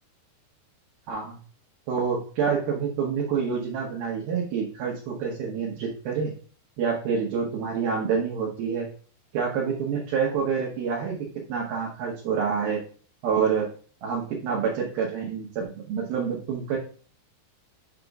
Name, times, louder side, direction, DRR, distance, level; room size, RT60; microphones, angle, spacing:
voice 1, 1.1-1.4 1.9-6.3 6.8-8.9 9.3-12.8 13.2-13.7 14.0-16.8, right 6 dB, 70° right, -3 dB, 2.7 m, -27 dB
8.0 x 5.8 x 2.4 m, 0.43 s
omnidirectional pair, 4.9 m